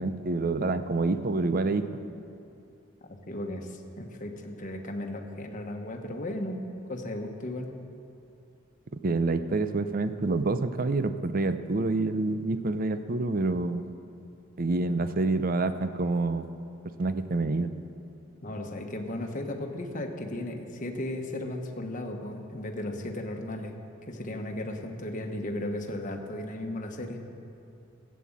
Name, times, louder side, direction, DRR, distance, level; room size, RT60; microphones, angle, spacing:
voice 1, 0.0-1.8 9.0-13.9 14.6-16.5 17.0-17.7, right 3 dB, 45° right, 11 dB, 0.6 m, -27 dB
voice 2, 3.3-7.7 18.4-23.8 24.0-27.2, left 1 dB, 40° left, 3 dB, 1.2 m, -35 dB
15.0 x 8.4 x 7.3 m, 2.7 s
head